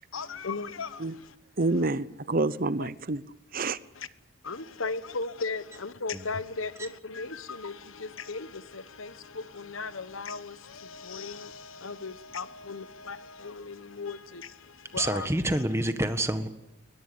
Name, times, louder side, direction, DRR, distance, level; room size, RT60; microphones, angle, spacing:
voice 1, 0.1-1.3 1.7-1.9 2.8-2.9 3.9-4.1 4.4-15.6, left 4 dB, 80° left, 1.1 m, -37 dB
voice 2, 1.6-3.2 3.5-3.8, right 2 dB, 45° right, 0.8 m, -28 dB
voice 3, 14.9-16.5, right 1 dB, 15° right, 1.6 m, -27 dB
22.0 x 20.5 x 8.6 m
head